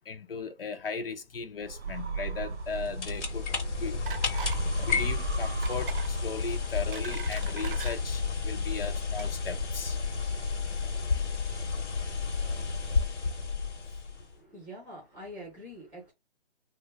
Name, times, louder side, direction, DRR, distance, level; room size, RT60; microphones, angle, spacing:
voice 1, 0.1-3.5 3.8-4.0 4.8-10.0, left 5 dB, 55° left, 0.4 m, -37 dB
sound 1, 1.6-6.9, right 5 dB, 90° right, 0.8 m, -36 dB
sound 2, 2.5-14.3, left 4 dB, 85° left, 0.9 m, -31 dB
sound 3, 4.1-4.6 4.9-5.1 5.6-6.1 6.6-8.0 8.7-8.9 9.2-9.3, right 6 dB, 50° right, 0.6 m, -41 dB
voice 2, 14.1-16.1, equal, 5° right, 0.8 m, -45 dB
3.1 x 2.2 x 3.3 m
hypercardioid pair, 155°, 34 cm